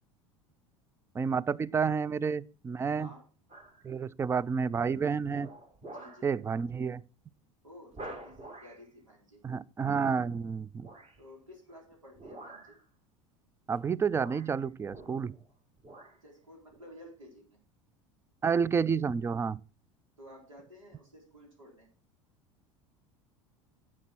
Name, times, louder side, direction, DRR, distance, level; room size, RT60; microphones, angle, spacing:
voice 1, 1.1-3.1 3.8-5.5 6.2-7.1 9.4-10.9 13.7-15.4 18.4-19.6, right 6 dB, 15° right, 0.4 m, -30 dB
sound 1, 3.5-3.8 4.4-4.7 5.2-6.3 6.7-6.9 7.2-7.3 7.9-8.8 10.8-11.2 12.1-12.8 13.7-13.8 14.1-15.5 15.8-16.2 16.7-16.8, right 2 dB, 40° right, 3.3 m, -48 dB
voice 2, 5.9-6.3 7.6-9.4 11.2-12.8 16.2-17.6 20.2-21.9, left 1 dB, 85° right, 4.1 m, -53 dB
11.0 x 7.3 x 4.5 m
hypercardioid pair, 75°, 16 cm